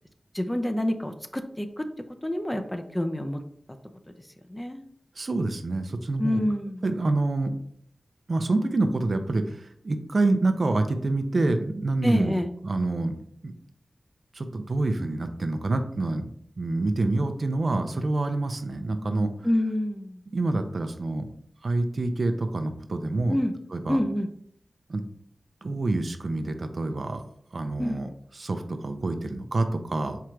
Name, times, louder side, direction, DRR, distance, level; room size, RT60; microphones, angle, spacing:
voice 1, 0.3-1.9 2.2-3.4 4.5-4.8 6.2-6.8 12.0-12.5 19.4-20.2 23.3-23.5 23.9-24.3 27.8-28.1, left 1 dB, 15° left, 7 dB, 0.5 m, -27 dB
voice 2, 5.2-6.4 6.8-7.6 8.3-12.3 12.6-13.2 13.4-13.5 14.3-16.3 16.6-19.3 20.3-21.3 21.6-23.4 23.7-24.0 24.9-25.0 25.6-27.2 27.5-28.1 28.3-30.2, right 2 dB, 65° right, 7 dB, 0.5 m, -27 dB
4.6 x 2.5 x 4.4 m, 0.67 s
wide cardioid pair, 70°, 0 cm